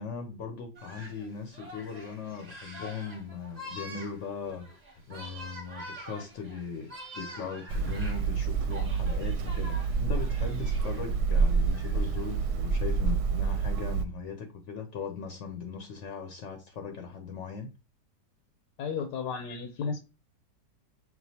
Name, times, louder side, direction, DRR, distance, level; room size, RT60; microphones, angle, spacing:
voice 1, 0.0-4.7 5.1-17.7, left 5 dB, 65° left, 0.8 m, -39 dB
sound 1, 0.8-12.5, equal, 30° right, 0.9 m, -46 dB
Hammer, 7.7-14.0, right 5 dB, 75° right, 1.0 m, -28 dB
voice 2, 18.8-20.0, left 5 dB, 90° left, 1.3 m, -33 dB
6.1 x 2.4 x 2.7 m
omnidirectional pair, 1.8 m